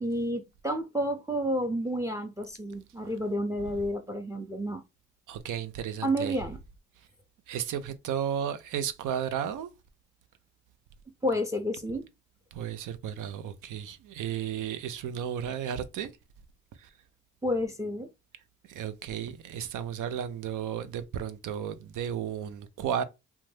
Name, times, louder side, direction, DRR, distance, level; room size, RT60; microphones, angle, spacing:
voice 1, 0.0-4.8 6.0-6.6 11.2-12.1 17.4-18.1, equal, 10° right, 0.6 m, -30 dB
voice 2, 5.3-6.4 7.5-9.7 12.5-16.1 16.8-16.9 18.7-23.0, right 9 dB, 75° right, 0.5 m, -33 dB
2.5 x 2.2 x 3.1 m
supercardioid pair, 50°, 31 cm